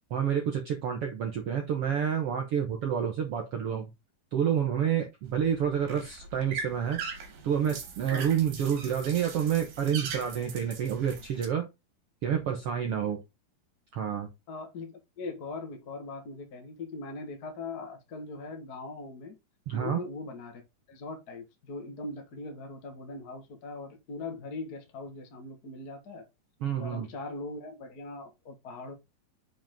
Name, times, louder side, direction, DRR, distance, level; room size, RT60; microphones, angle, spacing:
voice 1, 0.1-3.8 4.3-7.0 7.4-11.7 12.2-13.2 13.9-14.3 19.7-20.0 26.6-27.1, right 8 dB, 80° right, 1.3 m, -29 dB
sound 1, 5.3-11.5, right 5 dB, 65° right, 3.5 m, -41 dB
voice 2, 14.5-19.4 19.7-26.3 26.8-28.9, left 3 dB, 70° left, 0.9 m, -40 dB
7.2 x 5.3 x 3.7 m
omnidirectional pair, 4.6 m